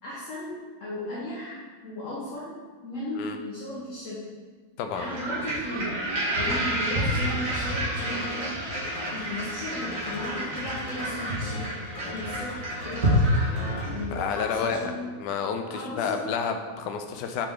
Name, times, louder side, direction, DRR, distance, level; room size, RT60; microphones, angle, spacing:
voice 1, 0.0-2.5 2.8-4.2 4.9-6.0 6.3-8.8 9.1-11.6 11.9-13.0 13.5-15.1 15.7-16.2, left 1 dB, 50° left, -7 dB, 1.3 m, -36 dB
voice 2, 4.8-5.1 6.4-6.6 10.3-10.5 14.1-14.9 15.2-17.5, left 6 dB, 80° left, 5 dB, 1.2 m, -30 dB
sound 1, 4.9-14.2, equal, 70° right, 2.5 m, -29 dB
sound 2, 8.0-14.7, left 2 dB, 30° left, 0.7 m, -40 dB
5.7 x 4.9 x 3.8 m, 1.4 s
omnidirectional pair, 1.9 m